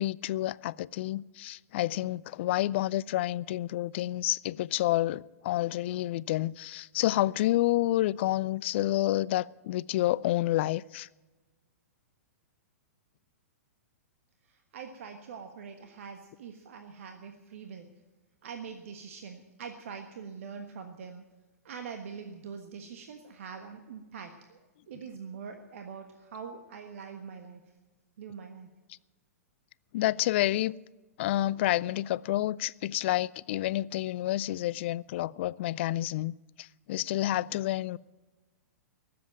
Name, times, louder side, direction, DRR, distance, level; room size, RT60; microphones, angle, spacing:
voice 1, 0.0-11.1 29.9-30.7 31.2-38.0, left 15 dB, 50° left, 0.4 m, -29 dB
voice 2, 14.5-17.9 18.4-21.3 21.6-27.6 28.2-28.7, right 6 dB, 60° right, 1.3 m, -44 dB
19.0 x 7.8 x 9.1 m
figure-of-eight pair, 110°, 8 cm